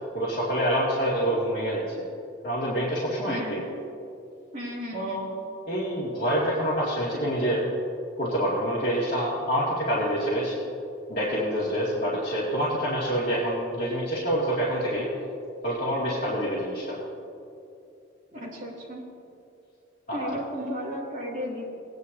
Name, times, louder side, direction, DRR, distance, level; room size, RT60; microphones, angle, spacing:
voice 1, 0.1-1.8 2.4-3.6 4.9-5.3 5.7-7.6 8.2-10.5 11.1-15.1 15.6-17.0 20.1-20.3, equal, 40° left, -9 dB, 2.3 m, -26 dB
voice 2, 3.3-3.6 4.5-5.3 18.3-19.1 20.1-21.6, equal, 40° right, -5 dB, 2.4 m, -34 dB
18.5 x 10.0 x 2.8 m, 2.6 s
head